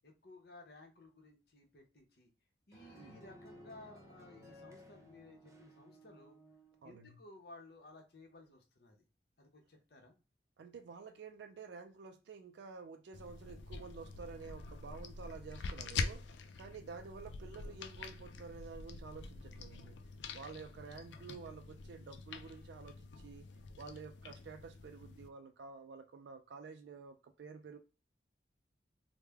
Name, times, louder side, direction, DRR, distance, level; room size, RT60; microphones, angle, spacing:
voice 1, 0.0-2.3 2.7-6.4 6.8-9.0 9.4-10.2, left 2 dB, 60° left, 0.8 m, -57 dB
sound 1, 2.7-6.9, equal, 15° right, 0.6 m, -57 dB
voice 2, 6.8-7.2 10.6-20.0 20.3-23.5 23.8-27.8, right 5 dB, 75° right, 0.3 m, -50 dB
sound 2, 13.1-25.3, left 4 dB, 80° left, 0.4 m, -45 dB
3.2 x 2.1 x 3.3 m
head